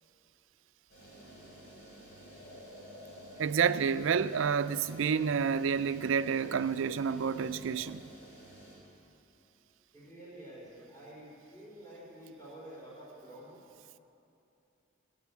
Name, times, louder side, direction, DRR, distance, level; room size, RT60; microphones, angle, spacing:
sound 1, 0.9-8.8, right 1 dB, 50° left, 3.8 m, -51 dB
voice 1, 3.4-8.0, right 6 dB, 75° right, 0.4 m, -29 dB
voice 2, 9.9-13.6, right 1 dB, 15° left, 4.0 m, -49 dB
14.0 x 9.1 x 8.3 m
head